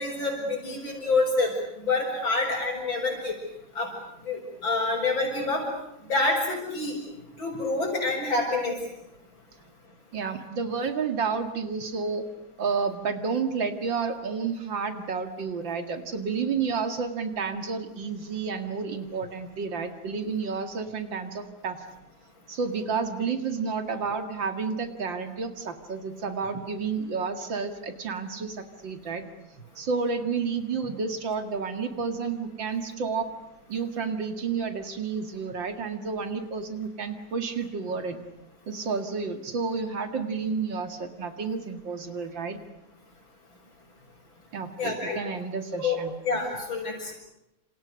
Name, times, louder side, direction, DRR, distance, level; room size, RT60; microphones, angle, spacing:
voice 1, 0.0-1.5 1.8-3.4 3.7-3.9 4.2-5.7 6.1-7.0 7.4-8.8 44.8-45.2 45.8-46.0 46.2-47.1, left 3 dB, 85° left, -4 dB, 6.7 m, -27 dB
voice 2, 10.1-12.3 12.6-21.8 22.5-29.2 29.8-33.3 33.7-38.2 38.7-42.6 44.5-46.1, right 5 dB, 75° right, 7 dB, 2.8 m, -30 dB
28.5 x 28.0 x 6.5 m, 0.86 s
omnidirectional pair, 2.1 m